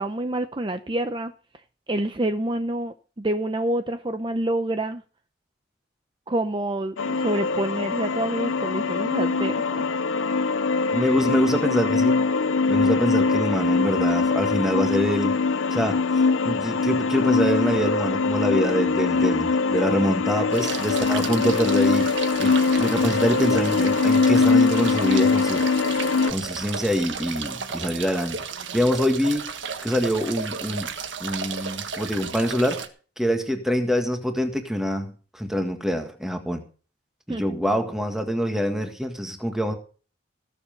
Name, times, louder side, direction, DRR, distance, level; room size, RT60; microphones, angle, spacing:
voice 1, 0.0-1.3 1.9-5.0 6.3-9.9 37.3-37.4, right 1 dB, 25° right, 0.6 m, -27 dB
sound 1, 7.0-26.3, left 4 dB, 85° left, 0.7 m, -22 dB
voice 2, 10.9-12.2 12.7-15.4 15.7-16.0 16.5-22.1 22.4-25.6 26.3-28.4 28.7-29.5 29.8-30.9 31.2-32.8 33.2-36.6 37.3-39.7, equal, ahead, 1.8 m, -25 dB
sound 2, 20.5-32.9, right 6 dB, 75° right, 1.5 m, -33 dB
19.0 x 7.3 x 5.3 m
head